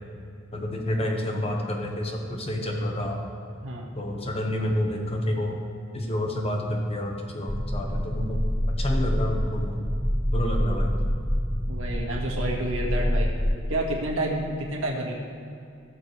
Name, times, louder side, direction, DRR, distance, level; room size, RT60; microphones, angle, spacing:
voice 1, 0.5-3.2 4.0-5.6 5.9-8.4 8.7-9.8 10.3-10.9, left 1 dB, 30° left, 2 dB, 1.3 m, -29 dB
sound 1, 7.5-13.6, equal, ahead, 0.3 m, -26 dB
voice 2, 11.7-13.3 13.7-15.1, right 1 dB, 90° right, -1 dB, 2.0 m, -29 dB
17.5 x 7.1 x 3.4 m, 2.5 s
head